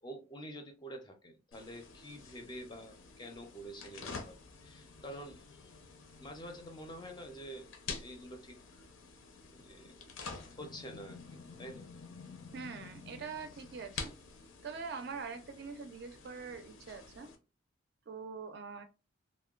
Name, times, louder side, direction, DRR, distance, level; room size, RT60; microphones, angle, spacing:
voice 1, 0.0-5.4 6.2-7.7 8.0-8.8 9.5-10.1 10.6-11.9, equal, 20° left, 0.4 m, -48 dB
sound 1, 1.5-17.3, left 4 dB, 90° left, 0.6 m, -49 dB
voice 2, 12.5-14.1 14.6-17.3 18.1-18.8, right 5 dB, 55° right, 0.4 m, -43 dB
2.9 x 2.1 x 2.3 m
head